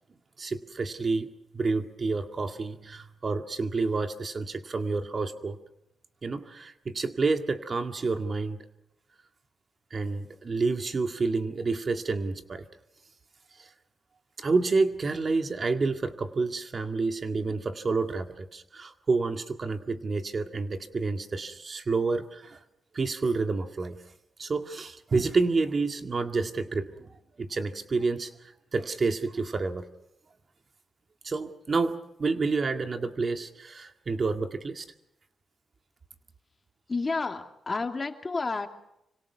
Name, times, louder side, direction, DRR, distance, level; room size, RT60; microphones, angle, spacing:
voice 1, 0.4-5.6 6.2-8.6 9.9-12.7 13.6-13.7 14.4-22.6 22.9-24.0 24.4-27.1 27.4-29.9 31.2-34.8, right 4 dB, 45° right, 7 dB, 2.0 m, -29 dB
voice 2, 36.9-38.7, left 3 dB, 35° left, 6 dB, 2.5 m, -30 dB
26.5 x 25.5 x 6.1 m, 0.82 s
cardioid pair, 70°, 0 cm